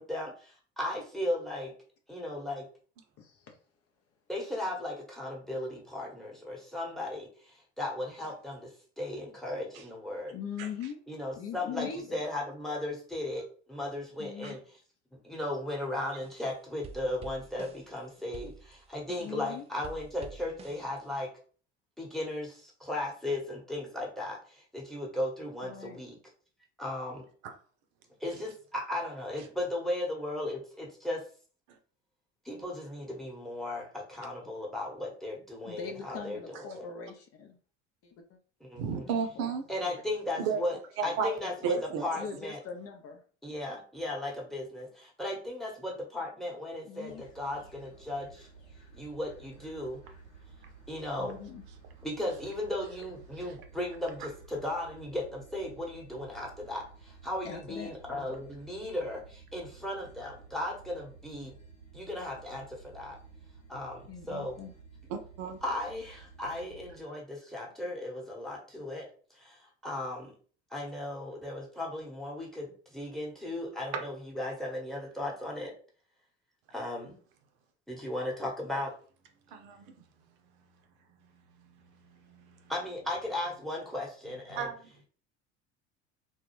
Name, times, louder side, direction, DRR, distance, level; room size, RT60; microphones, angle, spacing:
voice 1, 0.0-1.7 2.1-2.7 4.3-10.3 11.1-14.6 15.2-21.3 22.0-26.2 26.8-27.3 28.2-31.2 32.4-36.9 38.6-39.1 39.7-40.8 41.0-41.7 42.0-42.6 43.4-48.5 48.9-50.0 50.9-51.3 52.0-61.5 61.9-63.2 63.7-64.6 65.6-69.1 69.3-70.3 70.7-75.7 76.7-77.1 77.9-78.9 82.7-84.7, left 1 dB, ahead, -1 dB, 1.0 m, -36 dB
voice 2, 3.2-3.6 10.3-11.0 11.4-12.3 14.2-14.6 19.2-19.6 25.6-26.0 35.7-37.6 38.0-38.4 39.1-39.5 39.8-40.0 41.0-41.2 41.4-41.7 42.2-43.2 46.8-47.2 51.2-51.6 57.4-57.9 64.1-64.7, left 7 dB, 40° left, 4 dB, 0.5 m, -42 dB
sound 1, 16.2-16.5 16.8-19.5 19.8-21.2, right 5 dB, 20° right, 0.3 m, -49 dB
voice 3, 38.8-39.6 40.4-40.6 41.2-41.3 41.6-42.0 65.1-65.6 73.9-74.0 79.5-79.9 81.6-81.7 82.0-82.6 84.6-84.8, right 6 dB, 65° right, 6 dB, 0.6 m, -33 dB
sound 2, 47.1-67.0, right 4 dB, 85° left, 0.8 m, -53 dB
2.2 x 2.1 x 3.0 m, 0.42 s
hypercardioid pair, 70°, 36 cm